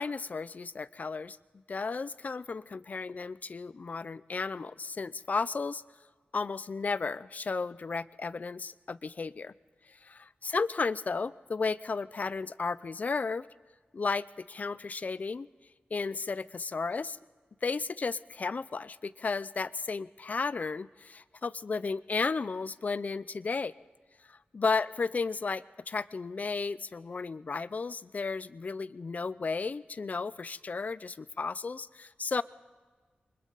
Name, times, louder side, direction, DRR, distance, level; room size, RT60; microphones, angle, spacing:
voice 1, 0.0-1.4 1.7-5.8 6.3-9.5 9.9-10.0 10.4-13.5 13.9-15.5 15.9-17.2 17.6-23.7 24.5-32.4, left 4 dB, 45° left, 17 dB, 0.5 m, -33 dB
28.0 x 24.5 x 4.1 m, 1.5 s
wide cardioid pair, 125°, 4 cm